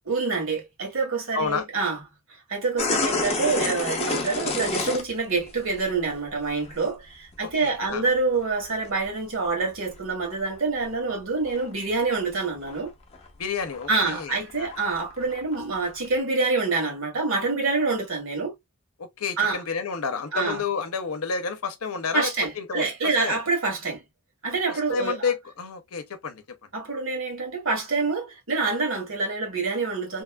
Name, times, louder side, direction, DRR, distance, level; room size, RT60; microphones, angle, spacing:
voice 1, 0.0-2.0 2.5-12.9 13.9-18.5 19.4-19.6 20.3-20.6 22.1-24.0 24.4-25.3 26.7-30.2, right 3 dB, 60° right, 1.6 m, -26 dB
voice 2, 1.3-1.7 7.4-8.0 13.4-14.7 19.0-23.4 24.7-26.4, left 5 dB, 75° left, 0.7 m, -30 dB
sound 1, 2.8-6.2 6.5-6.8 7.1-9.1 9.6-10.6 10.8-12.3 12.6-12.9 13.1-16.1, left 3 dB, 30° left, 0.6 m, -30 dB
3.0 x 2.4 x 2.2 m
head